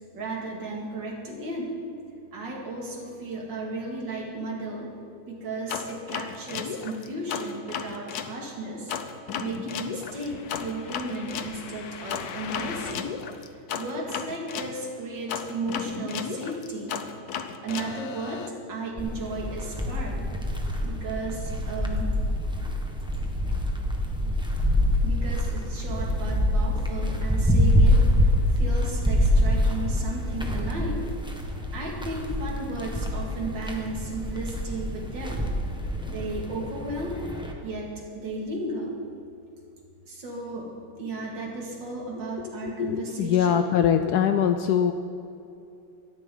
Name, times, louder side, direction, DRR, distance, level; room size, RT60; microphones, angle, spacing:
voice 1, 0.1-1.7 2.3-4.9 5.2-9.0 9.4-13.1 13.4-17.0 17.6-20.2 20.8-22.2 25.0-31.1 31.7-35.4 36.1-37.2 37.6-39.0 40.1-40.7 41.0-43.6 44.4-44.5 44.8-44.9, right 2 dB, 60° right, -2 dB, 3.0 m, -34 dB
sound 1, 5.7-8.3 8.9-14.7 15.3-18.5, left 7 dB, 60° left, 1.1 m, -34 dB
sound 2, 19.0-37.5, left 1 dB, 5° right, 1.0 m, -26 dB
voice 2, 42.8-44.9, left 8 dB, 90° left, 8 dB, 0.8 m, -22 dB
17.0 x 13.5 x 3.9 m, 2.7 s
omnidirectional pair, 2.3 m